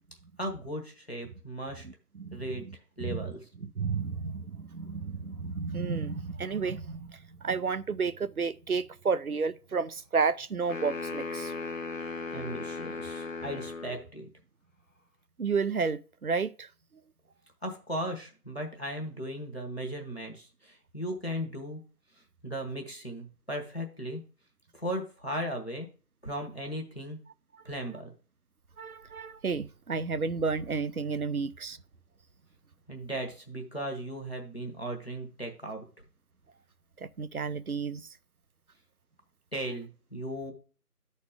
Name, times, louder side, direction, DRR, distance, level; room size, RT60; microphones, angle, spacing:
voice 1, 0.4-1.9 2.3-3.5 12.3-14.3 17.6-21.8 22.1-24.2 24.7-25.9 26.2-27.2 27.6-28.1 32.9-35.8 39.5-40.5, equal, 40° left, 1.2 m, -37 dB
voice 2, 3.6-11.5 15.4-16.7 28.8-31.8 37.0-38.1, right 5 dB, 65° right, 0.6 m, -31 dB
sound 1, 10.7-14.0, left 3 dB, 55° left, 0.8 m, -37 dB
12.0 x 4.2 x 3.5 m
figure-of-eight pair, 180°, 47 cm